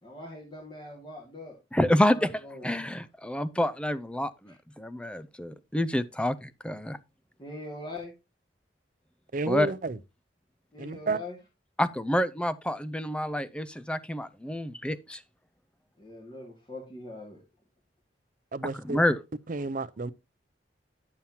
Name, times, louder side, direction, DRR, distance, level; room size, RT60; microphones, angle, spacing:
voice 1, 0.0-2.8 4.5-4.6 7.4-8.1 10.7-11.4 16.0-17.4, left 2 dB, 25° left, 1.8 m, -43 dB
voice 2, 1.7-2.3 2.6-7.0 9.5-9.7 11.8-15.2 18.9-19.2, left 1 dB, 5° left, 0.4 m, -28 dB
voice 3, 9.3-10.0 10.8-11.2 18.5-19.0 19.5-20.1, right 3 dB, 45° right, 0.5 m, -31 dB
11.0 x 7.2 x 2.8 m
head